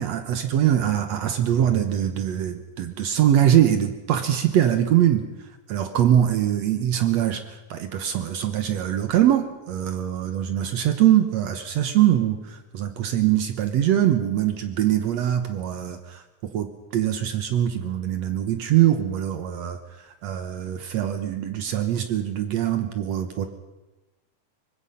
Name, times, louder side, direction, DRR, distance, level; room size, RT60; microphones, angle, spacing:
voice 1, 0.0-5.3 5.7-19.8 20.1-23.5, right 11 dB, 65° right, 8 dB, 1.9 m, -23 dB
24.0 x 20.0 x 5.6 m, 1.1 s
omnidirectional pair, 3.9 m